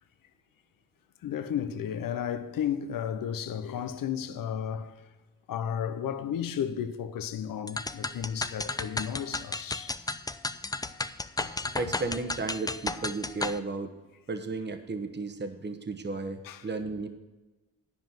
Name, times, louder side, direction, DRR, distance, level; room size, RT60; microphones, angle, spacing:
voice 1, 1.2-5.0 5.5-10.0 11.4-11.7 16.4-16.7, left 9 dB, 70° left, 0.8 m, -33 dB
sound 1, 7.7-13.6, left 2 dB, 10° left, 0.5 m, -33 dB
voice 2, 11.8-13.9 14.3-17.1, right 3 dB, 30° right, 1.1 m, -34 dB
10.0 x 5.2 x 7.5 m
supercardioid pair, 45°, 34 cm